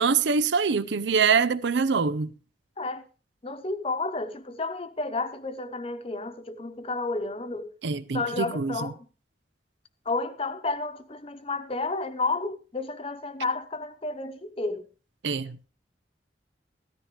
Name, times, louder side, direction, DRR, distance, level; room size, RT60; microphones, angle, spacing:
voice 1, 0.0-2.3 7.8-8.9 15.2-15.6, right 5 dB, 85° right, 0.6 m, -24 dB
voice 2, 3.4-7.7 8.1-9.0 10.0-14.9, left 3 dB, 35° left, 0.9 m, -31 dB
15.0 x 13.5 x 3.2 m
head